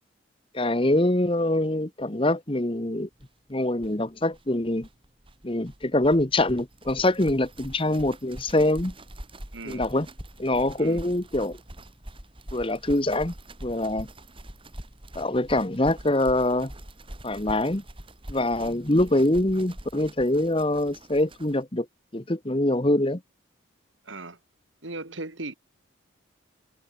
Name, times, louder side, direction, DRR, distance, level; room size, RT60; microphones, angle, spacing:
voice 1, 0.5-3.1 3.5-4.9 5.4-8.9 9.7-10.1 10.4-11.6 12.5-13.3 13.6-14.1 15.1-16.7 17.2-17.8 18.3-21.9 22.1-23.2, left 1 dB, 25° left, 1.2 m, -24 dB
sound 1, 3.2-3.3 3.5-3.6 3.8-21.6, right 1 dB, 25° right, 3.8 m, -44 dB
voice 2, 9.5-9.9 10.8-11.1 24.0-24.4 24.8-25.6, right 2 dB, 70° right, 2.5 m, -37 dB
head